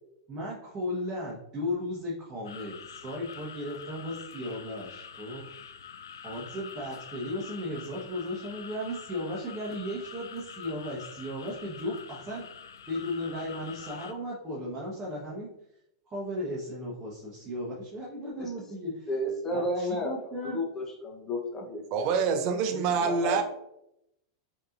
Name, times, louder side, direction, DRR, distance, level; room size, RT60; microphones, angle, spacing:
voice 1, 0.3-5.4 6.2-12.5 12.9-15.5 16.1-19.1 19.5-20.6 22.7-23.1, left 1 dB, 25° right, -6 dB, 1.2 m, -35 dB
sound 1, 2.4-14.1, left 7 dB, 85° left, 0.3 m, -46 dB
voice 2, 19.1-20.1 20.4-22.2 23.0-23.4, left 1 dB, 20° left, 1 dB, 1.0 m, -32 dB
voice 3, 21.9-23.4, right 5 dB, 50° right, 6 dB, 0.6 m, -26 dB
5.1 x 3.0 x 2.6 m, 0.80 s
hypercardioid pair, 110°, 2 cm